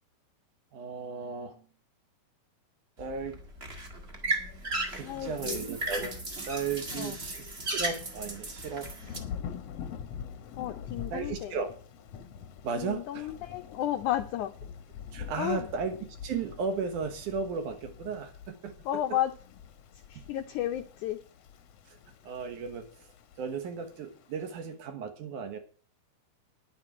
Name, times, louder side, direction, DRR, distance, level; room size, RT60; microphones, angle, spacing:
voice 1, 0.7-1.6 3.0-3.4 4.9-6.2 6.5-8.9 11.1-11.7 12.6-13.3 15.1-16.0 16.2-19.2 20.2-20.3 21.9-22.0 22.2-23.1 23.4-25.6, right 5 dB, 65° right, 7 dB, 2.5 m, -35 dB
sound 1, 3.0-9.2, right 2 dB, 30° right, 1.1 m, -35 dB
voice 2, 5.0-5.6 6.9-7.2 10.6-11.5 12.8-14.5 15.4-15.7 18.8-19.3 20.1-21.2, left 12 dB, 90° left, 8 dB, 1.7 m, -32 dB
Thunder / Rain, 9.0-24.6, left 8 dB, 70° left, 1.5 m, -45 dB
10.5 x 9.1 x 6.2 m, 0.40 s
omnidirectional pair, 4.4 m